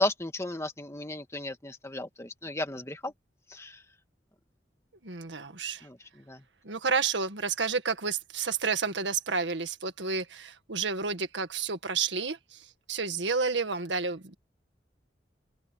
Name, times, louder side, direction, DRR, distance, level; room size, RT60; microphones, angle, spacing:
voice 1, 0.0-3.1 3.5-3.7 5.8-6.0 6.3-6.4, left 2 dB, 15° left, 1.8 m, -33 dB
voice 2, 5.0-5.9 6.6-14.4, right 5 dB, 85° right, 1.8 m, -30 dB
open air
head